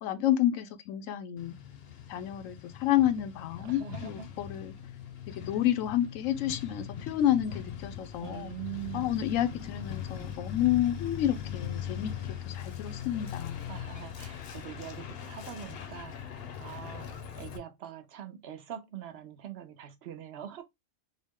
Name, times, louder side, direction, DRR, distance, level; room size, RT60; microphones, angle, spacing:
voice 1, 0.0-1.5 2.1-4.7 5.3-8.5 8.9-12.1 12.4-13.8, left 12 dB, 85° left, 1.0 m, -30 dB
Truck, 1.4-17.6, left 9 dB, 60° left, 0.8 m, -40 dB
voice 2, 3.6-4.3 8.2-9.3 13.7-17.1 17.4-20.6, right 10 dB, 60° right, 0.9 m, -43 dB
3.7 x 2.0 x 3.5 m
omnidirectional pair, 1.3 m